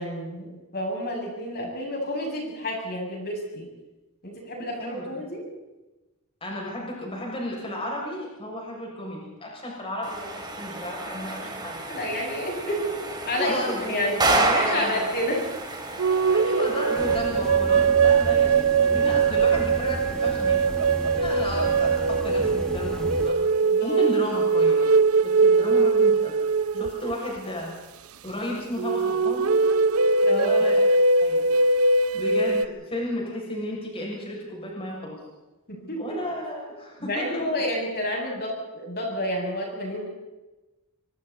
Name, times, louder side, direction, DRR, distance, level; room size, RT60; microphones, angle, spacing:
voice 1, 0.0-3.7 4.2-5.5 11.9-12.9 13.2-15.4 23.6-24.0 26.7-26.8 30.2-30.5 35.7-36.0 37.0-40.1, left 1 dB, 50° left, -1 dB, 7.2 m, -29 dB
voice 2, 4.8-5.3 6.4-12.0 13.4-15.2 16.3-23.5 23.8-24.9 25.2-27.7 28.2-29.5 30.3-30.9 31.2-31.6 32.1-35.2 35.8-37.5, left 1 dB, 25° left, -2 dB, 6.9 m, -33 dB
sound 1, 10.0-17.1, right 2 dB, 20° right, 3.2 m, -29 dB
sound 2, 16.0-27.4 28.8-32.7, right 4 dB, 85° right, 0.8 m, -21 dB
sound 3, 16.9-23.3, equal, 5° left, 1.7 m, -34 dB
25.5 x 25.0 x 4.3 m, 1.1 s
head